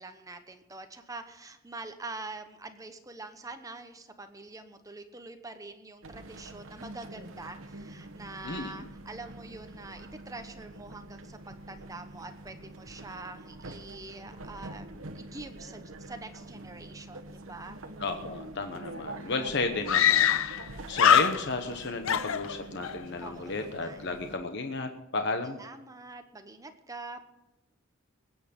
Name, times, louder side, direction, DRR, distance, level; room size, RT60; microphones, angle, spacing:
voice 1, 0.0-17.8 23.2-24.0 25.6-27.2, right 2 dB, 15° right, 8 dB, 1.0 m, -45 dB
sound 1, 6.0-24.4, right 2 dB, 75° right, 1.2 m, -46 dB
voice 2, 8.4-8.9 18.0-20.6 20.9-25.6, left 3 dB, 55° left, 6 dB, 1.1 m, -33 dB
Screaming, 18.8-18.9 19.1-19.2 19.9-20.7 20.9-21.7 22.1-23.0, left 9 dB, 75° left, 0.5 m, -23 dB
20.5 x 9.3 x 5.4 m, 0.94 s
head